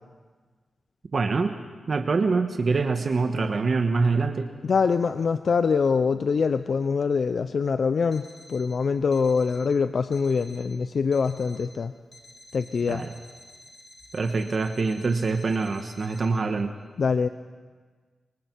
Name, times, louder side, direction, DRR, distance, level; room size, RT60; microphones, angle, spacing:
voice 1, 1.1-1.5 1.9-4.5 12.9-13.1 14.1-16.7, right 4 dB, 50° right, 6 dB, 1.3 m, -25 dB
voice 2, 4.6-11.9 12.5-13.0 17.0-17.3, left 5 dB, 65° left, 10 dB, 0.6 m, -24 dB
Alarm, 8.1-8.7 9.1-9.7 10.1-10.7 11.1-11.7 12.1-16.2, left 1 dB, 45° left, 3.0 m, -50 dB
25.0 x 24.0 x 4.7 m, 1.5 s
cardioid pair, 85°, 0 cm